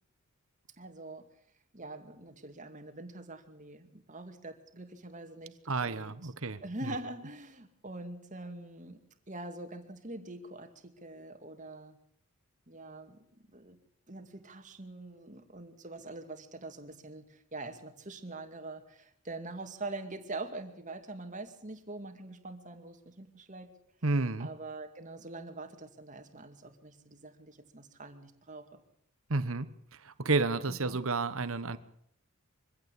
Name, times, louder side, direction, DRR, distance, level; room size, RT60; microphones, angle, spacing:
voice 1, 0.8-1.3 1.7-6.1 6.6-12.0 12.7-13.8 14.1-23.7 24.4-28.8 30.7-31.0, right 2 dB, 35° right, 7 dB, 2.4 m, -44 dB
voice 2, 5.7-6.6 6.9-7.0 24.0-24.5 29.3-29.7 30.0-31.8, right 3 dB, 65° right, 14 dB, 1.2 m, -31 dB
24.0 x 16.0 x 8.4 m, 0.70 s
head